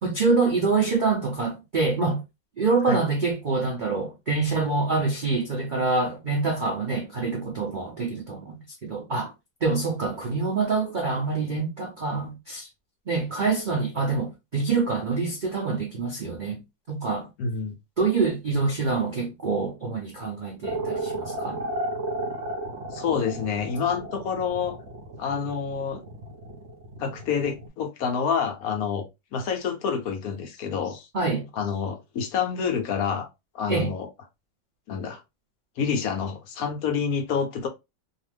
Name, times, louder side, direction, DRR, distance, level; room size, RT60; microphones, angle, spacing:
voice 1, 0.0-2.2 2.6-9.3 9.6-12.7 13.1-16.6 16.9-17.3 18.0-21.6 31.1-31.5 33.7-33.9, right 4 dB, 90° right, 0.4 m, -26 dB
voice 2, 17.4-17.7 22.9-24.8 25.2-26.0 27.0-29.0 29.3-31.1 31.5-33.3 33.5-34.1 34.9-35.2 35.8-37.7, left 6 dB, 70° left, 1.0 m, -28 dB
sound 1, 20.6-27.7, right 1 dB, 55° right, 0.8 m, -33 dB
2.7 x 2.4 x 3.2 m
omnidirectional pair, 1.9 m